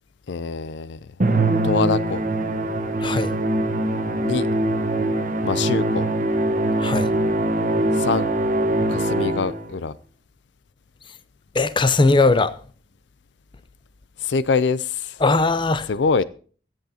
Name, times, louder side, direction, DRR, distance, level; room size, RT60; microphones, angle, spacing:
voice 1, 0.3-1.1 1.6-2.2 4.2-4.5 5.4-6.1 7.9-8.3 8.9-10.0 14.2-15.2 15.9-16.2, left 5 dB, 75° left, 0.5 m, -24 dB
Musical instrument, 1.2-9.7, right 1 dB, 45° right, 1.1 m, -22 dB
voice 2, 3.0-3.4 6.8-7.1 11.5-12.6 15.2-15.9, left 3 dB, 25° left, 0.6 m, -19 dB
23.5 x 8.0 x 2.8 m
head